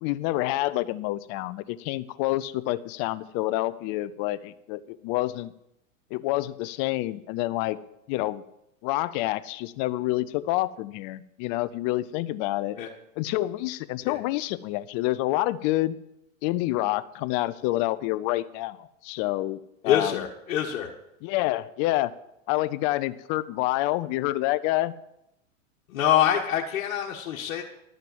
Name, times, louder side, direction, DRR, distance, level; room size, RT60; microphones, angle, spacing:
voice 1, 0.0-5.5 6.1-7.8 8.1-8.4 8.8-12.8 13.2-16.0 16.4-20.2 21.2-22.1 22.5-24.9, left 17 dB, 40° left, 14 dB, 0.6 m, -28 dB
voice 2, 19.8-20.9 25.9-27.6, left 10 dB, 70° left, -1 dB, 1.6 m, -25 dB
12.0 x 6.7 x 7.9 m, 0.83 s
hypercardioid pair, 130°, 40 cm